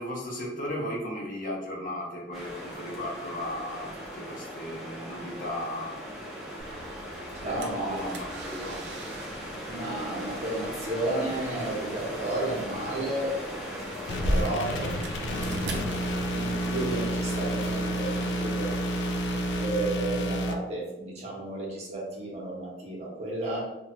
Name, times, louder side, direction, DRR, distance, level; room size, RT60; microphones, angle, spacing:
voice 1, 0.0-6.0 7.4-8.9, left 1 dB, 50° left, -2 dB, 0.7 m, -36 dB
sound 1, 2.3-19.7, equal, ahead, 0.6 m, -39 dB
sound 2, 6.6-17.7, equal, 65° right, 0.4 m, -38 dB
voice 2, 7.4-8.1 9.7-15.8 16.3-18.8 19.6-23.6, right 2 dB, 35° right, -4 dB, 0.8 m, -33 dB
sound 3, 14.1-20.5, equal, 80° left, 0.4 m, -30 dB
2.9 x 2.2 x 2.9 m, 0.93 s
head